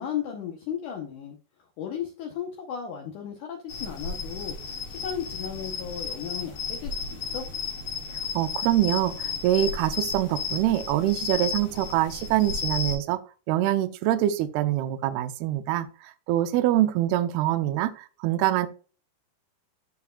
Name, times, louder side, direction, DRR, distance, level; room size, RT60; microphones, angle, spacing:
voice 1, 0.0-1.4 1.8-7.5, left 9 dB, 80° left, 1 dB, 1.8 m, -35 dB
sound 1, 3.7-13.0, left 5 dB, 65° left, 3.8 m, -33 dB
voice 2, 8.3-13.2 13.5-15.9 16.3-18.7, right 13 dB, 80° right, 11 dB, 2.4 m, -24 dB
12.5 x 4.7 x 2.3 m, 0.37 s
omnidirectional pair, 4.9 m